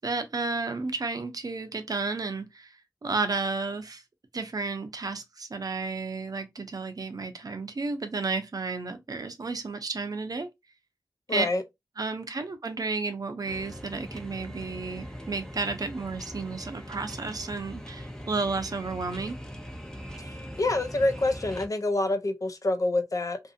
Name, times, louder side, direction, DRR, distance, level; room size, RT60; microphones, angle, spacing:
voice 1, 0.0-2.7 3.0-4.0 4.3-10.5 11.3-11.5 12.0-19.4, right 3 dB, 60° right, 0.6 m, -32 dB
voice 2, 11.3-11.6 20.2-23.4, left 2 dB, 55° left, 0.5 m, -27 dB
sound 1, 13.4-21.7, equal, 10° left, 0.6 m, -41 dB
2.6 x 2.6 x 2.4 m
wide cardioid pair, 70°, 7 cm